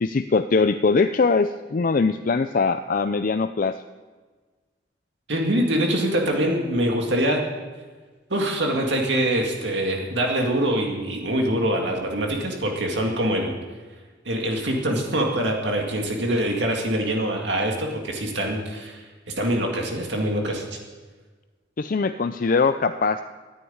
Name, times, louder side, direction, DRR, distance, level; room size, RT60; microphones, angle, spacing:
voice 1, 0.0-3.8 21.8-23.2, left 4 dB, 45° left, 9 dB, 0.4 m, -22 dB
voice 2, 5.3-7.4 8.3-13.5 14.3-19.0 19.3-20.6, right 1 dB, 65° right, 1 dB, 2.2 m, -24 dB
14.0 x 9.6 x 8.8 m, 1.4 s
head